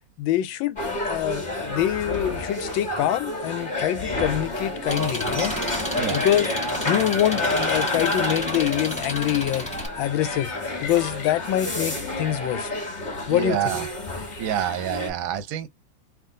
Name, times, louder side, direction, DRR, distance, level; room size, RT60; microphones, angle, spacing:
voice 1, 0.2-0.8 1.1-5.7 6.1-6.5 6.8-9.7 10.0-10.5 10.8-12.7 13.3-13.8, left 12 dB, 90° left, 1.4 m, -25 dB
sound 1, 0.8-15.1, left 2 dB, 25° left, 1.7 m, -29 dB
Engine, 4.9-9.9, equal, 5° left, 1.1 m, -32 dB
sound 2, 9.9-15.1, left 4 dB, 65° left, 1.8 m, -42 dB
voice 2, 13.3-13.9 14.4-15.7, right 11 dB, 65° right, 0.9 m, -27 dB
3.7 x 2.6 x 3.7 m
omnidirectional pair, 2.1 m